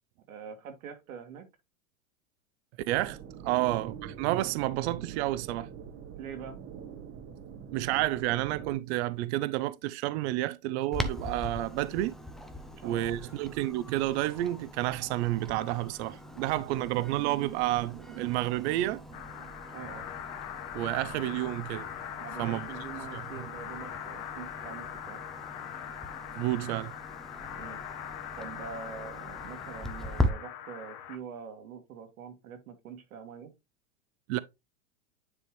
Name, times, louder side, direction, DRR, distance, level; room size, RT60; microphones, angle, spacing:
voice 1, 0.3-1.4 6.2-6.6 12.7-13.2 19.7-20.1 22.2-25.2 27.5-27.8 28.4-33.5, right 7 dB, 75° right, 2.0 m, -44 dB
sound 1, 2.9-8.8, right 8 dB, 30° right, 1.1 m, -44 dB
voice 2, 2.9-5.7 7.7-12.2 12.8-19.0 20.7-21.9 22.4-22.7 23.1-23.2 26.3-26.9 34.3-34.4, right 16 dB, 55° right, 0.6 m, -30 dB
Clock, 10.9-30.3, left 1 dB, ahead, 0.3 m, -40 dB
sound 2, 19.1-31.2, left 10 dB, 55° left, 1.3 m, -41 dB
9.7 x 3.6 x 3.0 m
hypercardioid pair, 115°, 42 cm